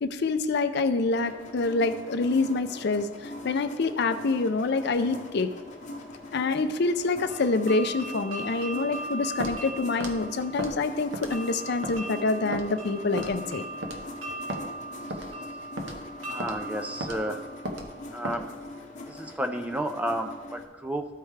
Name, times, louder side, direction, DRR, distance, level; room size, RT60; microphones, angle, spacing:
voice 1, 0.0-5.5 6.3-13.6, left 3 dB, 55° left, 10 dB, 0.5 m, -26 dB
sound 1, 1.2-20.6, left 2 dB, 35° left, 0.8 m, -42 dB
sound 2, 7.3-18.1, right 2 dB, 90° right, 1.9 m, -39 dB
Walk footsteps, 9.4-9.6 10.0-10.2 10.6-10.8 11.1-11.4 11.8-12.0 12.5-12.7 13.2-13.4 13.8-14.0 14.5-14.6 15.1-15.3 15.8-16.0 16.4-16.6 17.0-17.2 17.7-17.9 18.2-18.4, right 1 dB, 65° right, 0.9 m, -34 dB
voice 2, 16.2-17.4 18.1-18.5 19.1-21.1, right 1 dB, 5° right, 6 dB, 0.4 m, -32 dB
13.0 x 4.6 x 3.3 m, 1.3 s
head